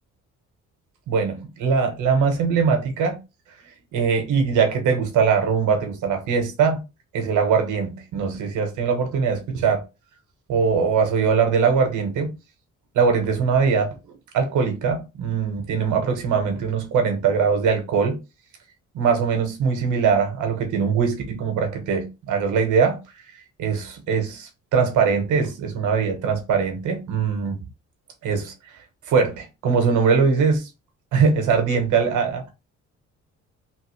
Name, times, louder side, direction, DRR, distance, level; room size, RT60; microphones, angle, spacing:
voice 1, 1.1-3.2 3.9-6.8 7.1-9.8 10.5-12.3 12.9-18.2 18.9-23.0 23.6-27.7 28.2-28.5 29.1-30.7 31.1-32.4, right 5 dB, 85° right, 1.1 m, -21 dB
3.1 x 2.7 x 3.1 m
cardioid pair, 90°, 30 cm